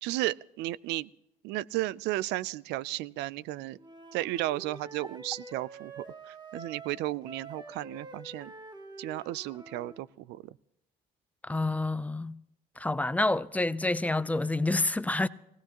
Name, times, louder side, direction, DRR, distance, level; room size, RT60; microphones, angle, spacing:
voice 1, 0.0-1.1 1.4-3.8 4.1-8.5 9.0-10.5, right 16 dB, 85° right, 0.4 m, -34 dB
Wind instrument woodwind instrument, 3.8-10.0, right 3 dB, 25° right, 1.6 m, -47 dB
voice 2, 11.4-12.4 12.8-15.3, left 2 dB, 10° left, 0.5 m, -28 dB
22.0 x 17.0 x 2.9 m
cardioid pair, 110°, 17 cm